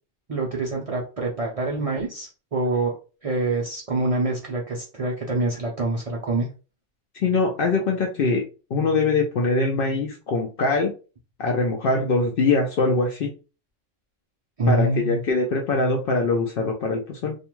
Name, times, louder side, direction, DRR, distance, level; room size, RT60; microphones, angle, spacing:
voice 1, 0.3-3.0 3.2-6.5 14.6-15.2, right 2 dB, 70° right, -2 dB, 0.3 m, -25 dB
voice 2, 7.2-8.4 8.7-10.9 11.4-13.3 14.7-17.4, left 3 dB, 65° left, 2 dB, 0.6 m, -22 dB
2.4 x 2.2 x 2.9 m, 0.33 s
omnidirectional pair, 1.3 m